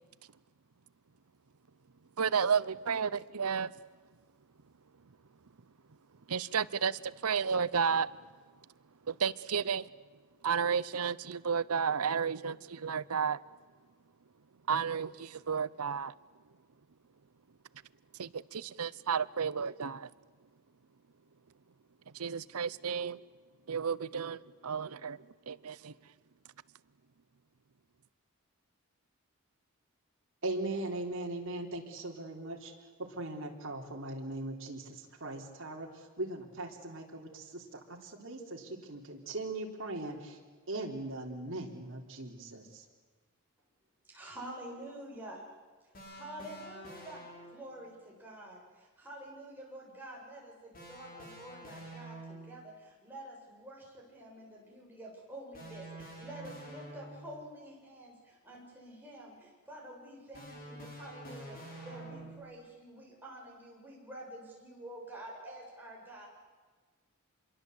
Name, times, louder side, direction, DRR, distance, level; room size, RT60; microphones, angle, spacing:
voice 1, 2.2-3.7 6.3-8.1 9.1-9.9 10.4-13.4 14.7-16.1 18.2-20.1 22.1-23.2 23.7-25.2 25.5-25.9, right 6 dB, 85° right, 19 dB, 0.7 m, -32 dB
voice 2, 30.4-32.7 33.0-40.4 40.7-42.8, right 2 dB, 60° right, 0 dB, 3.7 m, -39 dB
voice 3, 44.0-45.4 45.8-47.2 47.5-66.3, right 1 dB, 10° right, -3 dB, 7.7 m, -48 dB
sound 1, 45.9-47.8 50.7-52.6 55.5-57.5 60.3-62.5, right 1 dB, 40° left, 7.5 m, -48 dB
27.0 x 23.0 x 8.2 m, 1.4 s
head